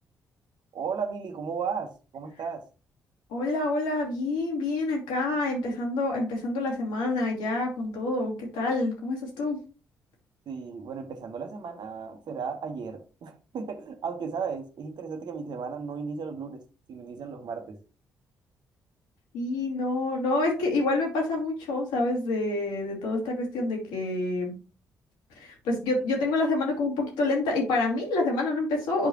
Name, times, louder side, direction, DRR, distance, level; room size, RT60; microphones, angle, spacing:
voice 1, 0.7-2.6 10.5-16.6 16.9-17.8, right 5 dB, 60° right, 1.3 m, -35 dB
voice 2, 3.3-9.6 19.3-24.5 25.4-29.1, left 2 dB, 75° left, 2.8 m, -27 dB
9.1 x 5.0 x 3.0 m
hypercardioid pair, 40°, 9 cm